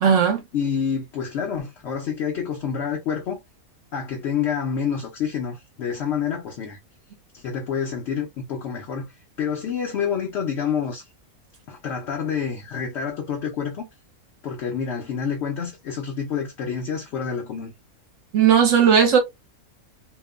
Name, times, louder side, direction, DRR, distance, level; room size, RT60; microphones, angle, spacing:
voice 1, 0.0-0.4 18.3-19.2, right 7 dB, 65° right, 1.1 m, -16 dB
voice 2, 0.5-3.4 3.9-6.8 7.3-9.1 9.4-11.0 11.7-13.9 14.4-17.7, left 7 dB, 60° left, 0.8 m, -28 dB
2.8 x 2.0 x 2.3 m
omnidirectional pair, 1.5 m